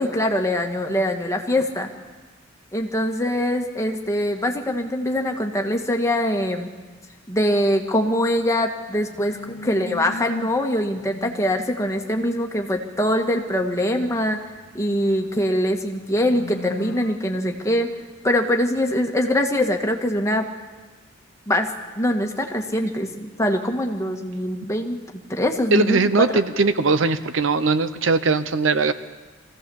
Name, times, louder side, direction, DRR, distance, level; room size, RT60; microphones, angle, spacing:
voice 1, 0.0-1.9 2.7-6.7 7.3-14.4 14.7-17.9 18.2-20.5 21.5-21.7 21.9-25.0 25.3-26.3, left 1 dB, 15° left, 2 dB, 1.6 m, -23 dB
sound 1, 8.9-10.6 10.9-11.5 14.0-15.3 15.8-17.2, left 2 dB, 55° left, 0.9 m, -38 dB
voice 2, 25.7-28.9, right 3 dB, 70° right, 12 dB, 0.8 m, -20 dB
23.5 x 16.0 x 7.1 m, 1.3 s
head